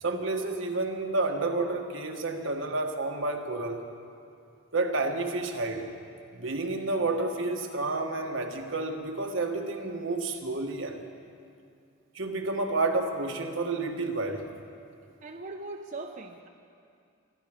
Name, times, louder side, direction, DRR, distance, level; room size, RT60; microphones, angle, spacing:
voice 1, 0.0-3.9 4.7-5.9 6.3-11.0 12.1-14.5, right 2 dB, 65° right, 3 dB, 1.4 m, -30 dB
voice 2, 15.2-16.5, right 2 dB, 40° right, 2 dB, 0.7 m, -40 dB
25.5 x 10.5 x 5.0 m, 2.4 s
head